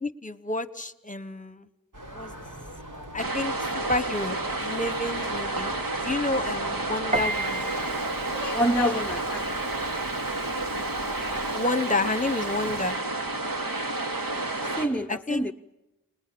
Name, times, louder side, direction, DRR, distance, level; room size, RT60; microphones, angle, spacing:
voice 1, 0.0-1.7 2.1-2.3 3.1-7.7 11.5-13.0 15.1-15.4, left 2 dB, 25° left, 14 dB, 1.2 m, -30 dB
sound 1, 1.9-11.5, right 1 dB, 65° right, 4.3 m, -42 dB
sound 2, 3.2-14.9, right 2 dB, 80° right, 2.5 m, -30 dB
Piano, 7.1-13.0, right 2 dB, 20° right, 1.0 m, -37 dB
voice 2, 8.3-9.4 14.6-15.5, equal, 5° left, 6 dB, 0.8 m, -27 dB
30.0 x 20.5 x 7.0 m, 0.99 s
wide cardioid pair, 50°, 33 cm